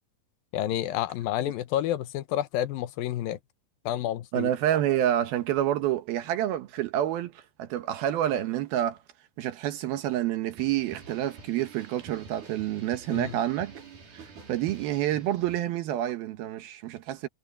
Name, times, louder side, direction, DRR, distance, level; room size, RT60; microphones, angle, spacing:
voice 1, 0.5-3.4 3.9-4.5 13.1-13.3, left 12 dB, 75° left, 2.5 m, -29 dB
voice 2, 4.3-9.0 9.4-13.7 14.1-17.3, right 12 dB, 80° right, 3.0 m, -28 dB
sound 1, 10.6-15.6, right 4 dB, 55° right, 6.8 m, -48 dB
omnidirectional pair, 4.4 m